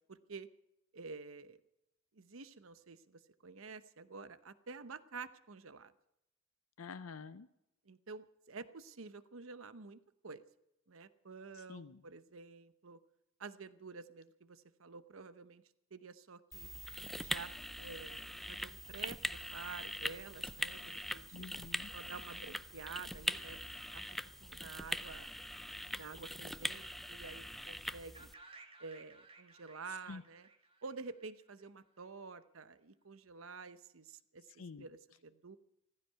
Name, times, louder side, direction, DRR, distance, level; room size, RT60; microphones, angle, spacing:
voice 1, 0.1-0.5 0.9-1.6 2.2-5.9 7.9-10.4 10.9-13.0 13.4-15.6 15.9-16.7 17.2-17.5 17.8-18.2 18.5-21.5 21.9-23.6 23.9-24.0 24.4-25.3 25.9-28.3 28.8-30.5 30.8-35.6, right 4 dB, 70° right, 13 dB, 0.9 m, -50 dB
voice 2, 6.8-7.5 11.5-12.0 21.3-21.9 30.1-30.2 34.6-34.9, left 4 dB, 85° left, 13 dB, 0.6 m, -48 dB
sound 1, 16.5-28.3, equal, ahead, 0.5 m, -42 dB
sound 2, 28.1-32.0, right 3 dB, 25° right, 1.9 m, -59 dB
15.5 x 15.0 x 5.7 m, 0.85 s
head